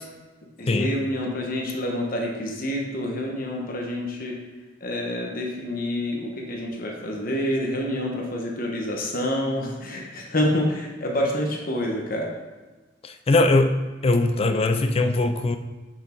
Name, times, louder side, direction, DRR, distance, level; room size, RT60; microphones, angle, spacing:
voice 1, 0.6-4.4 4.8-12.3, left 1 dB, 50° left, 0 dB, 1.1 m, -27 dB
voice 2, 13.0-13.8 14.0-15.6, left 2 dB, 30° left, 8 dB, 0.4 m, -21 dB
6.3 x 5.9 x 4.4 m, 1.3 s
head